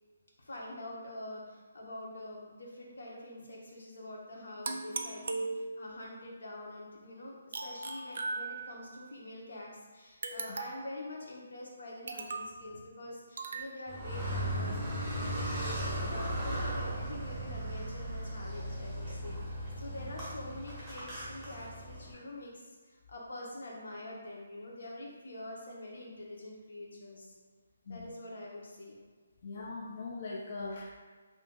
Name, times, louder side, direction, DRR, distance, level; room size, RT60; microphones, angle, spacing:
voice 1, 0.4-7.4 7.6-27.3 27.9-28.9, left 1 dB, 80° left, -3 dB, 0.8 m, -45 dB
sound 1, 4.6-6.1 7.5-9.0 10.2-11.0 12.1-12.6 13.4-13.7, right 3 dB, 55° right, 0.3 m, -38 dB
Car, 13.9-22.1, equal, 5° right, 0.7 m, -37 dB
voice 2, 27.9-28.2 29.4-31.0, left 3 dB, 45° left, -2 dB, 0.3 m, -41 dB
2.5 x 2.3 x 3.7 m, 1.5 s
hypercardioid pair, 165°, 0 cm